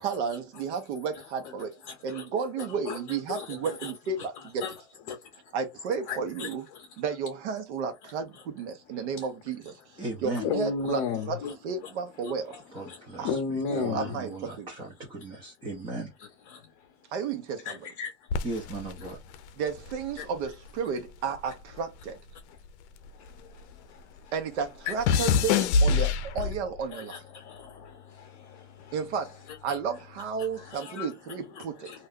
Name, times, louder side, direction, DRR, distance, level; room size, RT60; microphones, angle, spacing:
voice 1, 0.0-4.6 5.5-6.7 7.0-9.8 10.2-11.4 11.6-12.6 13.2-13.3 13.7-14.7 17.1-17.8 19.6-22.2 24.3-27.2 28.9-31.9, right 6 dB, 70° right, 0.9 m, -33 dB
voice 2, 1.9-2.2 2.6-3.9 4.4-4.7 5.1-5.5 6.1-7.0 8.9-9.1 10.4-11.6 11.8-11.9 12.2-14.2 16.5-16.9 17.6-18.5 19.0-19.1 20.2-20.3 23.1-24.3 24.8-24.9 26.9-29.0 29.5-29.8 30.4-31.1 31.5-32.1, left 6 dB, 40° left, 0.7 m, -36 dB
voice 3, 10.0-10.5 12.7-13.4 13.7-16.1 18.4-19.2, right 2 dB, 15° right, 0.6 m, -37 dB
sound 1, 18.3-20.8 21.1-23.7 24.0-26.8 27.5-27.9, left 5 dB, 75° left, 0.5 m, -27 dB
2.5 x 2.1 x 3.6 m
supercardioid pair, 155°, 34 cm